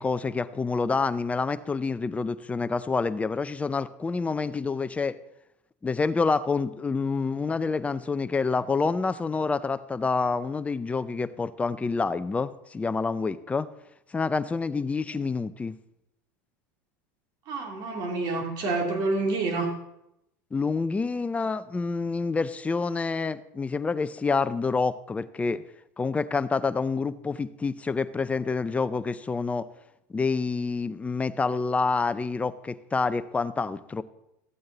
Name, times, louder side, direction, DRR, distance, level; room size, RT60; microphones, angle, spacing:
voice 1, 0.0-5.2 5.8-13.7 14.1-15.8 20.5-25.6 26.0-29.7 30.1-34.0, left 4 dB, 15° left, 14 dB, 0.6 m, -27 dB
voice 2, 17.5-19.7, right 3 dB, 50° right, 2 dB, 3.0 m, -28 dB
13.5 x 8.6 x 4.0 m, 0.85 s
hypercardioid pair, 105°, 9 cm